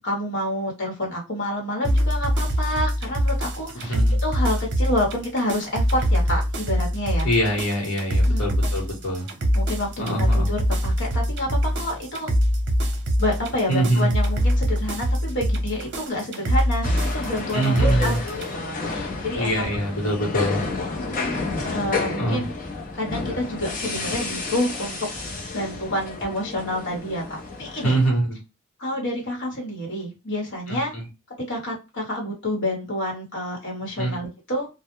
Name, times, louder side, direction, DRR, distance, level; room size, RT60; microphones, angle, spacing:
voice 1, 0.0-7.3 8.3-8.4 9.5-9.9 10.3-12.3 13.2-19.8 20.9-22.5 22.9-25.0 25.5-28.0 28.8-30.9 31.5-34.7, left 1 dB, 55° left, -2 dB, 1.1 m, -28 dB
sound 1, 1.8-18.5, equal, 55° right, 0.7 m, -23 dB
voice 2, 3.9-4.2 7.2-9.3 10.0-10.5 13.7-14.1 17.5-18.2 19.4-20.6 22.2-22.5 27.8-28.4 30.7-31.0 34.0-34.2, right 1 dB, 90° left, -1 dB, 1.1 m, -24 dB
sound 2, 16.8-28.1, left 3 dB, 40° left, 0.7 m, -31 dB
2.2 x 2.1 x 3.0 m, 0.28 s
head